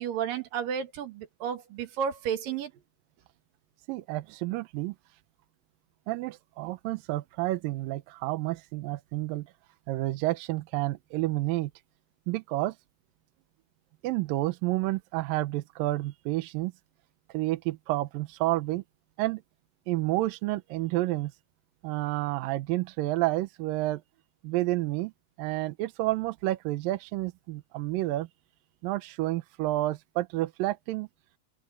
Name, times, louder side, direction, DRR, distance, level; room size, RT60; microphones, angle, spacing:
voice 1, 0.0-2.7, right 8 dB, 65° right, 3.2 m, -32 dB
voice 2, 3.9-5.0 6.1-9.5 9.9-11.7 12.3-12.8 14.0-16.7 17.3-18.8 19.2-19.4 19.9-21.3 21.8-24.0 24.4-25.1 25.4-28.3 28.8-31.1, right 17 dB, 80° right, 2.1 m, -30 dB
omnidirectional pair, 4.7 m